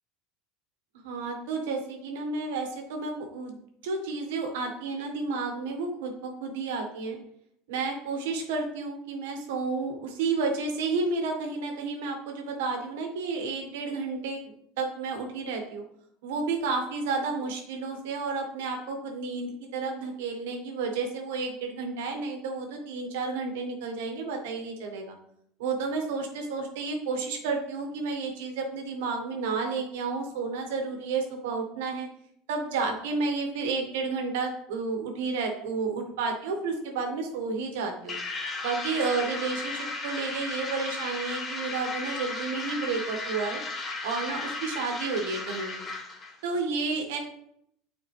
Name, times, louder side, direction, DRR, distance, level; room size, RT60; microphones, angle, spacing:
voice 1, 1.0-7.2 7.7-14.4 14.8-15.8 16.2-25.2 25.6-32.1 32.5-38.2 38.6-43.6 44.0-45.9 46.4-47.2, right 4 dB, 85° right, 3 dB, 1.4 m, -31 dB
sound 1, 38.1-46.4, left 3 dB, 20° left, 1.0 m, -35 dB
9.1 x 4.4 x 3.3 m, 0.73 s
cardioid pair, 165°, 0 cm